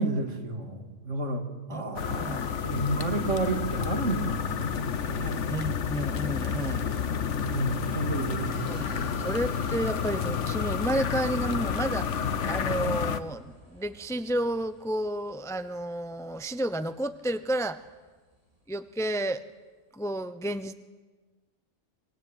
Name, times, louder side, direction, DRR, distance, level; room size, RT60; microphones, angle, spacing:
voice 1, 0.0-5.4 7.4-9.1, right 2 dB, 80° right, 4 dB, 3.1 m, -31 dB
sound 1, 2.0-13.2, left 7 dB, 75° left, 1.4 m, -30 dB
voice 2, 2.2-2.5 5.5-6.9 8.7-9.0 9.2-12.2 12.4-17.8 18.7-19.4 19.9-20.7, right 1 dB, 5° left, 12 dB, 0.7 m, -31 dB
sound 2, 8.5-19.2, equal, 30° right, 7.9 m, -52 dB
25.0 x 23.0 x 9.1 m, 1.3 s
omnidirectional pair, 1.2 m